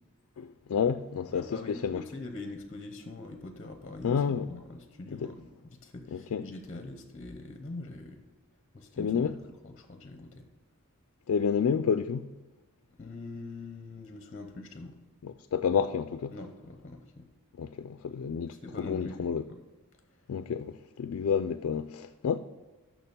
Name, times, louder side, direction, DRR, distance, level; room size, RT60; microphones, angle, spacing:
voice 1, 0.4-2.0 4.0-4.5 5.1-5.4 6.1-6.4 9.0-9.3 11.3-12.3 15.2-16.3 17.6-19.4 20.3-22.4, left 6 dB, 65° left, 0.3 m, -30 dB
voice 2, 1.3-8.2 8.7-9.3 9.6-10.5 13.0-15.0 16.3-17.3 18.6-19.6, left 2 dB, 30° left, 0.7 m, -43 dB
6.7 x 6.0 x 6.8 m
head